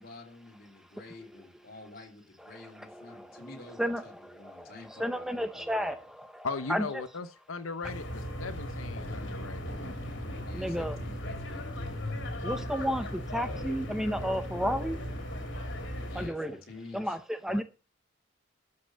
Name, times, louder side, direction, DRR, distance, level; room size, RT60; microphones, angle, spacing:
voice 1, 0.0-6.0 10.4-12.0 16.1-17.2, left 2 dB, 45° left, 3.1 m, -49 dB
voice 2, 2.5-3.4 3.8-6.9 10.5-11.0 12.4-15.0 16.1-16.6 16.9-17.6, equal, ahead, 0.6 m, -33 dB
voice 3, 6.4-9.7 17.5-17.6, left 4 dB, 85° left, 0.9 m, -38 dB
sound 1, 7.8-16.3, equal, 65° left, 3.1 m, -37 dB
13.0 x 5.7 x 7.6 m
head